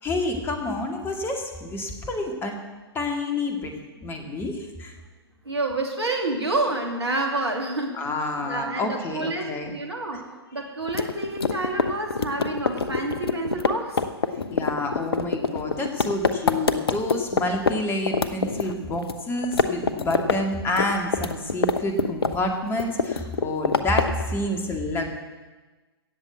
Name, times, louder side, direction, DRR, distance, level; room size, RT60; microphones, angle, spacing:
voice 1, 0.0-2.6 2.9-3.7 4.0-5.0 7.9-9.7 10.1-10.2 14.5-25.1, left 2 dB, 15° left, 4 dB, 2.1 m, -28 dB
voice 2, 5.4-8.1 8.4-14.0, right 2 dB, 80° right, 2 dB, 2.8 m, -29 dB
sound 1, 10.9-17.7 18.1-19.2 19.4-20.4 20.7-22.5 22.8-24.2, left 5 dB, 65° left, 0.9 m, -24 dB
16.0 x 7.2 x 8.3 m, 1.3 s
figure-of-eight pair, 115°, 14 cm